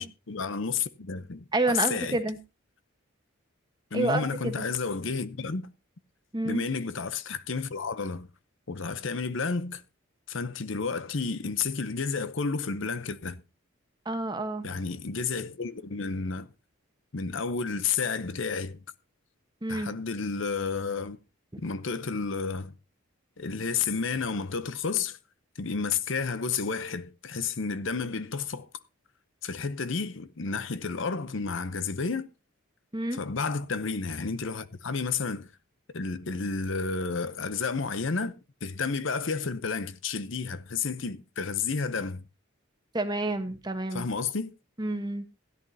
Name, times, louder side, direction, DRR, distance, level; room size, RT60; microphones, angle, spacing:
voice 1, 0.0-2.2 3.9-5.7 6.4-8.3 8.7-9.8 10.3-13.4 14.6-16.5 17.1-18.8 19.7-21.2 21.6-22.7 23.4-25.2 25.6-28.7 29.4-32.3 33.1-35.5 35.9-42.2 43.9-44.5, left 5 dB, 60° left, 0.7 m, -31 dB
voice 2, 1.5-2.4 3.9-4.5 6.3-6.6 14.1-14.7 19.6-19.9 32.9-33.2 42.9-44.1 44.8-45.2, right 2 dB, 20° right, 1.2 m, -29 dB
16.5 x 11.0 x 2.8 m
head